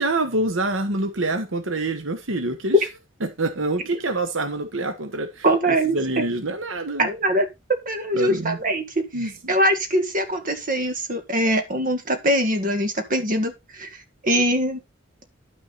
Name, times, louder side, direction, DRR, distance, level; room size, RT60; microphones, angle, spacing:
voice 1, 0.0-2.8 3.2-7.1 8.1-8.6 9.1-9.5, right 2 dB, 85° right, 1.2 m, -26 dB
voice 2, 5.4-6.3 7.0-9.1 9.5-13.9 14.2-14.8, right 1 dB, 45° right, 1.9 m, -22 dB
11.0 x 6.2 x 4.1 m
head